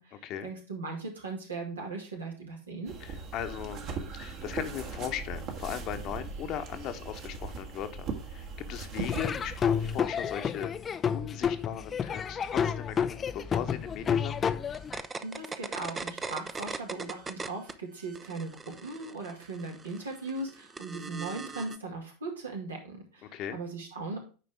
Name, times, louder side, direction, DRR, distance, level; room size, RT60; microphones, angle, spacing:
voice 1, 0.0-2.9 15.2-24.2, right 3 dB, 75° right, 0 dB, 2.5 m, -38 dB
sound 1, 2.9-10.0, right 4 dB, 45° right, 1.7 m, -39 dB
voice 2, 3.0-10.7 11.1-14.5 23.3-23.6, left 10 dB, 40° left, 8 dB, 1.1 m, -38 dB
Laughter / Drum, 9.0-15.0, left 7 dB, 25° left, 0.5 m, -30 dB
sound 2, 14.7-17.7 18.0-21.8, right 4 dB, 20° right, 0.7 m, -39 dB
9.3 x 5.2 x 3.5 m, 0.35 s
figure-of-eight pair, 80°, 0 cm